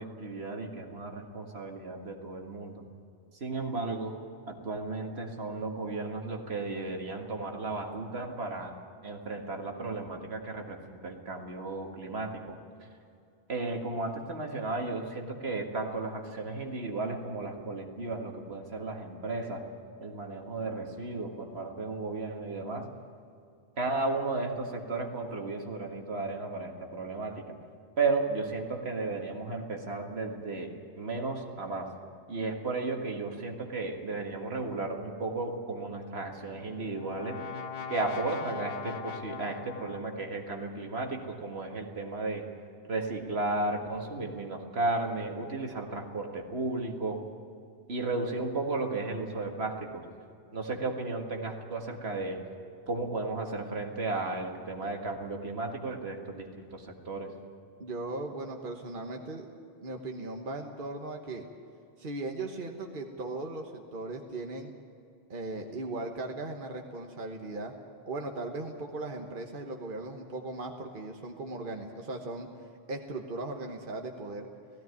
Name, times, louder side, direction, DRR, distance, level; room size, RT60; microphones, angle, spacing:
voice 1, 0.0-2.8 3.4-4.2 4.5-12.6 13.5-19.7 20.0-22.9 23.8-27.6 28.0-31.9 32.3-37.4 37.9-42.5 42.9-47.2 47.9-50.1 50.5-52.4 52.9-57.3, right 3 dB, 75° right, 2 dB, 2.1 m, -34 dB
Brass instrument, 36.2-40.4, left 6 dB, 65° left, 1.1 m, -41 dB
voice 2, 57.8-59.5 59.8-61.4 62.0-64.7 65.3-67.7 68.1-72.5 72.9-74.5, right 2 dB, 55° right, 2 dB, 1.4 m, -38 dB
17.5 x 15.5 x 9.5 m, 2.4 s
omnidirectional pair, 1.1 m